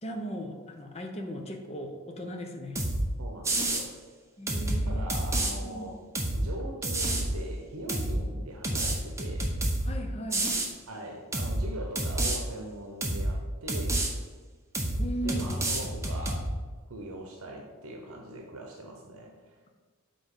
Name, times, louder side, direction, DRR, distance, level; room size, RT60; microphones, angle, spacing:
voice 1, 0.0-2.8 4.4-5.0 5.6-5.9 9.8-10.5 15.0-15.5, equal, 30° left, 4 dB, 0.8 m, -37 dB
sound 1, 2.8-3.0 3.4-3.8 4.5-5.5 6.2-6.4 6.8-7.3 7.9-8.2 8.6-9.9 10.3-10.7 11.3-11.6 12.0-12.4 13.0-13.3 13.7-14.1 14.7-15.0 15.3-16.5, right 1 dB, 15° right, 0.8 m, -29 dB
voice 2, 3.2-4.0 4.9-6.0 6.3-9.5 10.9-14.0 15.2-16.5 16.9-19.3, right 1 dB, 80° right, 2 dB, 0.8 m, -41 dB
6.9 x 3.9 x 5.4 m, 1.4 s
head